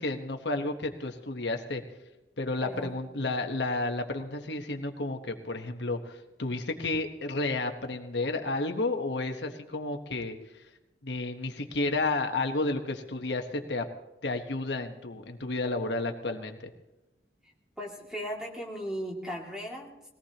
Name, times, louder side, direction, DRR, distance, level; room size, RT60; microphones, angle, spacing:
voice 1, 0.0-1.8 2.4-10.3 11.0-13.9 14.2-16.6, left 2 dB, 85° left, 5 dB, 1.2 m, -31 dB
voice 2, 2.6-3.0 17.8-19.9, equal, 5° right, -2 dB, 2.4 m, -37 dB
21.0 x 17.5 x 3.0 m, 0.96 s
head